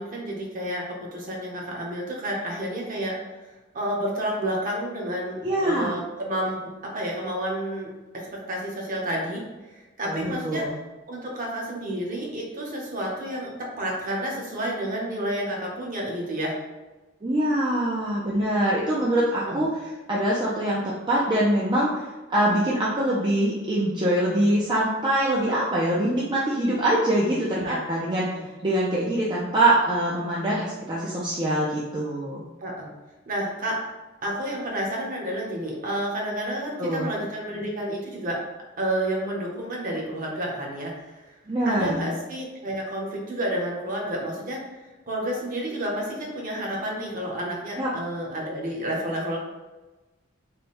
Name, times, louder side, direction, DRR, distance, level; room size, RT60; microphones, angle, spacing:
voice 1, 0.0-3.1 3.4-7.9 8.1-9.4 9.7-10.7 11.1-13.5 13.8-16.5 19.4-19.7 27.5-27.8 28.3-28.4 32.6-32.9 33.3-33.8 34.2-38.4 38.8-41.4 41.6-44.6 45.1-49.4, right 1 dB, 40° right, -2 dB, 0.9 m, -30 dB
voice 2, 5.4-5.9 10.0-10.7 17.2-19.7 20.1-28.3 28.6-32.4 36.8-37.1 41.5-42.1 47.8-47.9, right 1 dB, 20° right, -6 dB, 0.5 m, -24 dB
3.4 x 2.2 x 4.2 m, 1.2 s
head